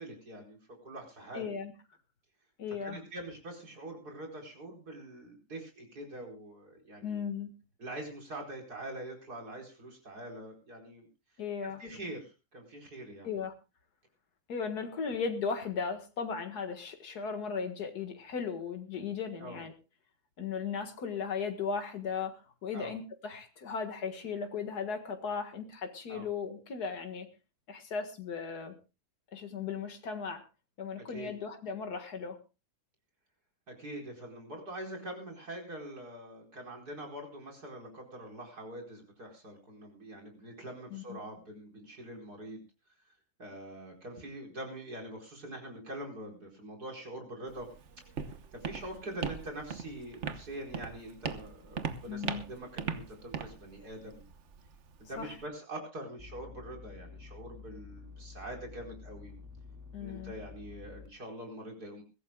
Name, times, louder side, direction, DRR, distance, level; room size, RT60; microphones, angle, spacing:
voice 1, 0.0-1.5 2.8-7.2 7.8-11.1 11.6-13.4 15.0-15.1 19.4-19.6 22.7-23.0 26.1-26.3 31.1-31.3 33.7-42.6 43.4-47.7 48.5-54.2 55.0-59.3 60.0-62.0, right 1 dB, 80° right, 1 dB, 5.1 m, -44 dB
voice 2, 1.3-1.7 2.6-3.0 7.0-7.5 11.4-11.8 13.2-13.5 14.5-19.7 20.4-22.4 22.6-27.3 27.7-28.7 29.3-30.4 30.8-32.4 40.9-41.2 52.1-52.4 55.2-55.3 59.9-60.3, left 6 dB, 85° left, 6 dB, 2.2 m, -36 dB
Walk footsteps, 47.5-55.5, right 6 dB, 50° right, 1.3 m, -40 dB
sound 1, 56.2-61.1, left 4 dB, 10° right, 2.3 m, -49 dB
21.5 x 16.5 x 2.3 m, 0.29 s
omnidirectional pair, 1.6 m